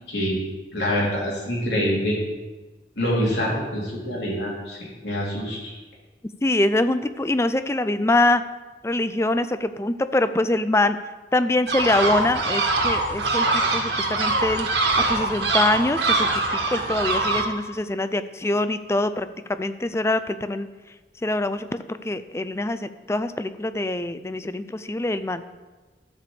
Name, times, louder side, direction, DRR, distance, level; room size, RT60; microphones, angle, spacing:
voice 1, 0.7-2.2 3.0-5.7, equal, 75° left, -4 dB, 3.6 m, -25 dB
voice 2, 6.4-8.4 8.8-11.0 11.3-14.7 15.0-16.3 16.7-19.3 19.6-20.7 21.2-25.4, left 2 dB, 15° left, 11 dB, 0.4 m, -24 dB
sound 1, 11.7-17.4, right 3 dB, 80° right, 1.8 m, -23 dB
13.0 x 5.1 x 6.9 m, 1.2 s
head